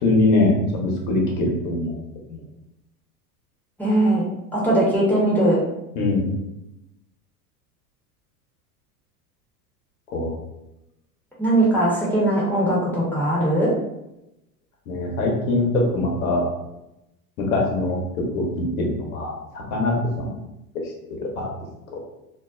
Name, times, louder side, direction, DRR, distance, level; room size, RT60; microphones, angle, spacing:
voice 1, 0.0-1.9 2.3-2.4 5.9-6.3 10.1-10.4 14.9-16.4 17.4-18.0 18.3-20.3 21.2-21.5 21.9-22.0, left 2 dB, 60° left, 0 dB, 1.0 m, -22 dB
voice 2, 3.8-4.2 4.5-5.6 11.4-13.7, right 1 dB, 5° left, -7 dB, 1.0 m, -20 dB
2.5 x 2.1 x 2.4 m, 0.88 s
hypercardioid pair, 90°, 46 cm